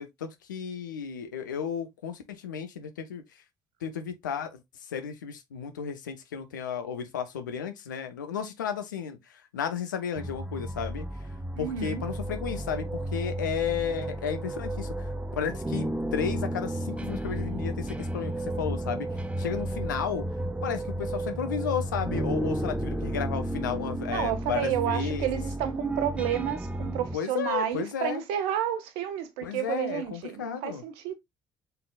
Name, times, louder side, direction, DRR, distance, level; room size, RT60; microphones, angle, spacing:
voice 1, 0.0-3.2 3.8-4.6 4.9-11.0 11.6-19.1 19.4-20.3 20.6-25.3 27.1-28.2 29.4-30.8, left 7 dB, 80° left, 0.6 m, -33 dB
sound 1, 10.2-27.2, right 1 dB, 10° right, 0.5 m, -32 dB
voice 2, 11.6-12.0 24.1-31.1, right 10 dB, 70° right, 0.8 m, -31 dB
5.4 x 3.8 x 2.3 m
figure-of-eight pair, 50°, 10 cm